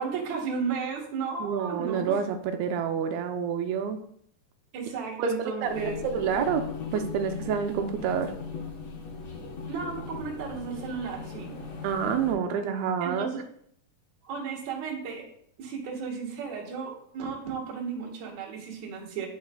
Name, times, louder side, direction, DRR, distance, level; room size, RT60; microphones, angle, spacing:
voice 1, 0.0-2.2 4.7-6.0 9.7-11.5 13.0-13.4 14.2-15.3 15.6-19.3, right 5 dB, 60° right, -2 dB, 2.4 m, -34 dB
voice 2, 1.4-4.1 5.2-8.3 11.8-13.3, right 7 dB, 85° right, 6 dB, 2.5 m, -28 dB
sound 1, 5.6-12.3, left 4 dB, 70° left, 1.6 m, -38 dB
10.5 x 4.8 x 2.2 m, 0.67 s
omnidirectional pair, 4.3 m